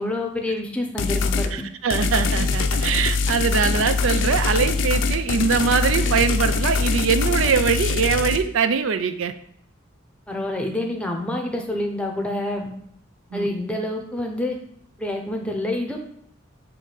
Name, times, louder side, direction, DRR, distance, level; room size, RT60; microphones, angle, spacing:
voice 1, 0.0-1.6 10.3-12.7 13.3-14.6 15.0-16.0, left 1 dB, 5° left, 2 dB, 0.7 m, -27 dB
sound 1, 1.0-1.5 1.9-8.4, left 4 dB, 60° left, 0.5 m, -23 dB
voice 2, 1.5-9.3 13.3-13.5, right 6 dB, 70° right, 10 dB, 0.4 m, -22 dB
7.0 x 3.2 x 5.0 m, 0.70 s
head